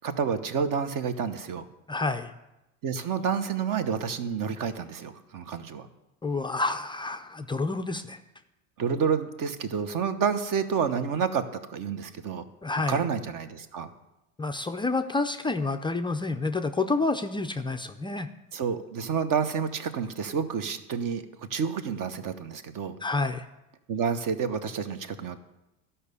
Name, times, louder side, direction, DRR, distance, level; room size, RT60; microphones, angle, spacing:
voice 1, 0.0-1.6 2.8-5.9 8.8-12.4 12.9-13.9 18.5-21.2 21.5-23.0 23.9-25.4, right 6 dB, 45° right, 10 dB, 1.0 m, -29 dB
voice 2, 1.9-2.3 6.2-8.2 12.6-13.0 14.4-18.3 23.0-23.5, left 3 dB, 10° left, 6 dB, 0.3 m, -29 dB
12.0 x 5.6 x 6.8 m, 0.96 s
supercardioid pair, 95°, 44 cm